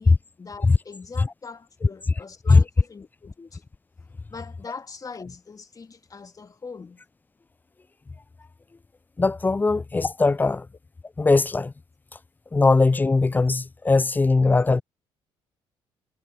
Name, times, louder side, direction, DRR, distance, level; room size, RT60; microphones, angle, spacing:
voice 1, 0.0-3.6 4.3-7.0, left 5 dB, 35° left, 2.7 m, -41 dB
voice 2, 9.2-10.7 11.2-11.7 12.5-14.8, left 3 dB, 15° left, 0.3 m, -19 dB
hypercardioid pair, 55°, 11 cm